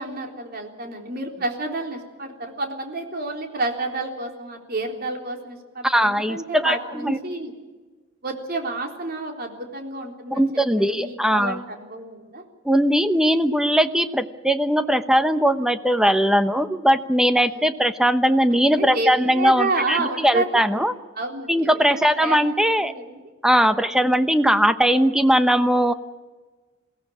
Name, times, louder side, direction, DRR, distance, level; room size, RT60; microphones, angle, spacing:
voice 1, 0.0-7.5 8.2-10.5 10.8-12.4 17.4-17.6 18.8-20.8 21.2-23.2 23.6-23.8, right 2 dB, 50° right, 2 dB, 3.8 m, -30 dB
voice 2, 5.8-7.2 10.3-11.6 12.6-20.9 21.5-22.9 23.4-25.9, equal, 5° right, 9 dB, 1.0 m, -20 dB
22.5 x 17.0 x 8.5 m, 1.3 s
head